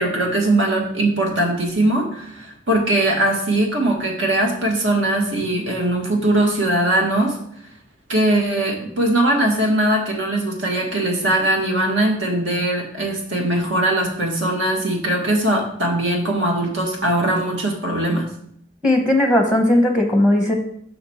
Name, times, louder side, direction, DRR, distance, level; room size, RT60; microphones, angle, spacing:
voice 1, 0.0-7.4 8.1-18.3, right 1 dB, 75° right, 0 dB, 1.5 m, -20 dB
voice 2, 18.8-20.5, left 1 dB, 5° right, 2 dB, 0.8 m, -17 dB
5.9 x 5.2 x 4.1 m, 0.68 s
head